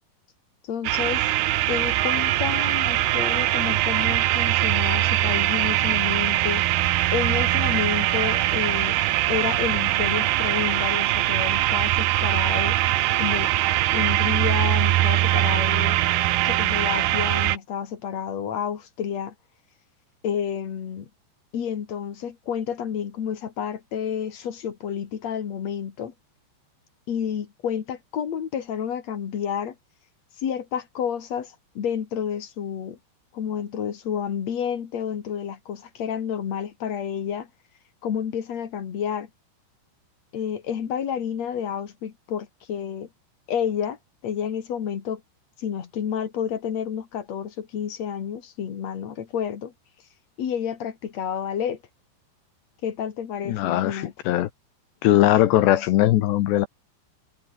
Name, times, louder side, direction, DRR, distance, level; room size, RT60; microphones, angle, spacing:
voice 1, 0.6-1.3 1.7-6.7 7.1-9.0 9.3-12.8 13.2-13.5 13.9-16.0 16.4-19.3 20.2-21.1 21.5-26.1 27.1-29.7 30.4-33.0 33.3-37.5 38.0-39.3 40.3-43.1 43.5-44.0 44.2-45.2 45.6-49.7 50.4-51.8 52.8-54.1, left 8 dB, 45° left, 2.7 m, -30 dB
sound 1, 0.8-17.6, right 15 dB, 70° right, 2.8 m, -22 dB
voice 2, 53.4-54.5 55.0-56.7, left 14 dB, 75° left, 3.2 m, -20 dB
omnidirectional pair, 5.2 m